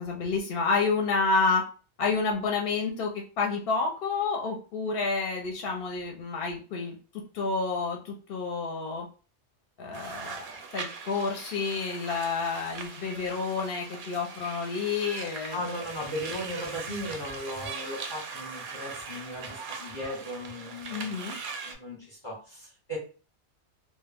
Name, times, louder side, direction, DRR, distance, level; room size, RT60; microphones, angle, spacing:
voice 1, 0.0-1.6 2.0-7.0 7.3-9.1 9.8-15.6 20.9-21.3, left 4 dB, 60° left, 1 dB, 0.7 m, -29 dB
sound 1, 9.9-21.7, right 5 dB, 60° right, 0.6 m, -40 dB
voice 2, 15.5-21.2 21.6-23.0, equal, 25° left, -3 dB, 0.8 m, -37 dB
2.1 x 2.1 x 3.3 m, 0.36 s
omnidirectional pair, 1.2 m